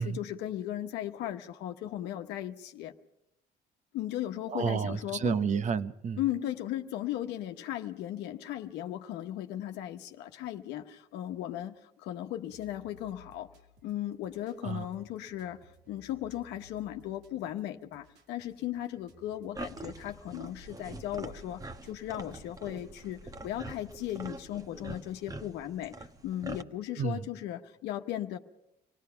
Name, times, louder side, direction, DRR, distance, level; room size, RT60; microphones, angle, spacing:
voice 1, 0.0-2.9 3.9-5.5 6.2-11.8 12.0-13.5 13.8-15.6 15.9-28.4, left 12 dB, 85° left, 1.1 m, -37 dB
voice 2, 4.5-6.2 14.6-14.9 27.0-27.2, right 6 dB, 45° right, 1.0 m, -30 dB
sound 1, 12.5-24.5, left 2 dB, 85° right, 2.6 m, -59 dB
sound 2, 19.5-26.6, right 2 dB, 20° right, 1.1 m, -44 dB
26.5 x 18.0 x 5.7 m
cardioid pair, 110°, 17 cm